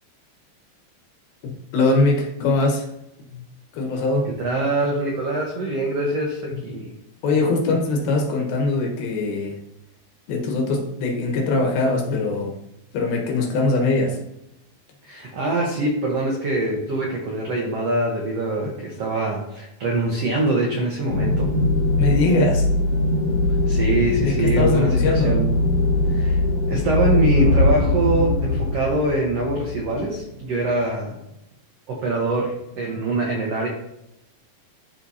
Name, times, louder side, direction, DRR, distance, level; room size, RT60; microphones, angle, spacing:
voice 1, 1.7-2.9 3.3-3.4 3.7-4.3 7.2-9.6 10.3-12.5 12.9-14.2 22.0-22.7 24.2-25.3, left 2 dB, 75° left, 1 dB, 3.0 m, -21 dB
voice 2, 4.4-6.9 15.0-21.5 23.7-25.5 26.1-26.4 26.7-31.2 31.9-33.7, right 2 dB, 80° right, -2 dB, 1.4 m, -24 dB
sound 1, 21.1-30.4, left 2 dB, 50° left, 2.1 m, -21 dB
12.5 x 4.4 x 2.8 m, 0.82 s
omnidirectional pair, 4.6 m